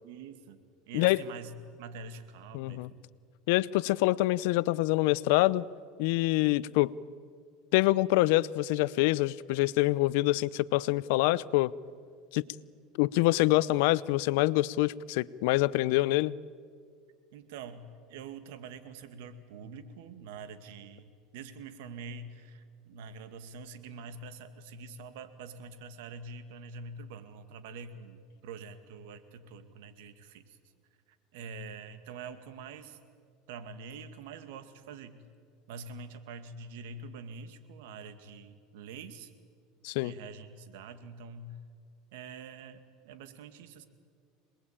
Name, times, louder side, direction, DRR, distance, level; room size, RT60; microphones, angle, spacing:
voice 1, 0.0-0.6 0.9-1.5 1.8-3.1 17.3-17.8 18.1-30.6 31.3-33.0 33.5-35.2 35.7-39.3 40.0-41.6 42.1-43.8, right 4 dB, 75° right, 9 dB, 2.2 m, -45 dB
voice 2, 2.5-2.9 3.5-5.7 6.0-6.9 7.7-11.7 12.3-12.4 13.0-16.3 39.8-40.1, left 18 dB, 70° left, 20 dB, 0.6 m, -26 dB
27.0 x 20.5 x 8.9 m, 2.1 s
supercardioid pair, 120°, 0 cm